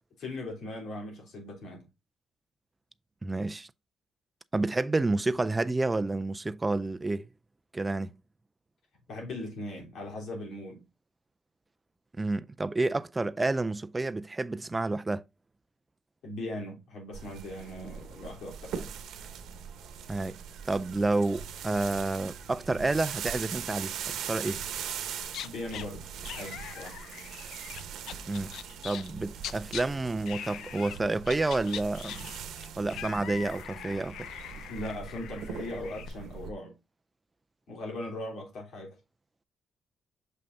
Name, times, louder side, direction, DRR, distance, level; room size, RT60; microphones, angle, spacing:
voice 1, 0.2-1.8 9.1-10.8 16.2-18.9 25.4-27.0 34.5-36.7 37.7-39.0, left 1 dB, 60° left, 3.4 m, -39 dB
voice 2, 3.2-3.7 4.5-7.3 7.7-8.1 12.2-15.2 20.1-20.4 20.7-24.6 28.3-28.5 28.8-32.3 32.8-34.3, right 2 dB, 15° right, 0.3 m, -29 dB
sound 1, 17.1-36.5, right 8 dB, 75° right, 1.0 m, -41 dB
sound 2, 25.2-25.9 26.2-29.1 29.4-29.8 30.3-31.0 31.2-36.1, left 10 dB, 80° left, 0.5 m, -42 dB
6.5 x 5.5 x 2.6 m
cardioid pair, 170°, 0 cm